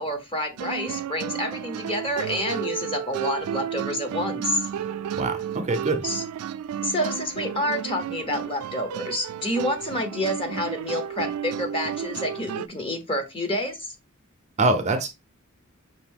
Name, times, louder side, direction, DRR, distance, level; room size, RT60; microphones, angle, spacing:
voice 1, 0.0-4.7 6.0-6.2 6.8-13.9, left 1 dB, 25° left, 5 dB, 1.0 m, -28 dB
sound 1, 0.6-12.7, right 9 dB, 85° right, 0.3 m, -32 dB
voice 2, 5.1-6.0 14.6-15.1, right 2 dB, 30° right, 7 dB, 0.6 m, -24 dB
5.8 x 2.6 x 3.5 m, 0.25 s
head